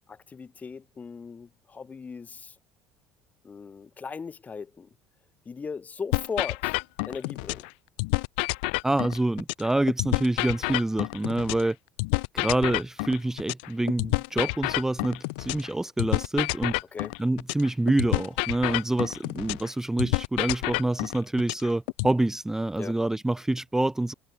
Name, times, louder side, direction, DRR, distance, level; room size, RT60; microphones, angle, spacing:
voice 1, 0.1-2.5 3.4-4.9 5.4-6.8 7.1-7.7 16.9-17.1 22.8-23.0, left 5 dB, 30° left, 1.4 m, -38 dB
sound 1, 6.1-7.7 8.0-11.7 12.0-15.7 16.0-19.7 20.0-22.1, left 28 dB, 70° left, 0.5 m, -29 dB
voice 2, 8.8-11.8 12.3-16.8 17.2-24.1, right 2 dB, 10° right, 0.6 m, -26 dB
hypercardioid pair, 65°, 6 cm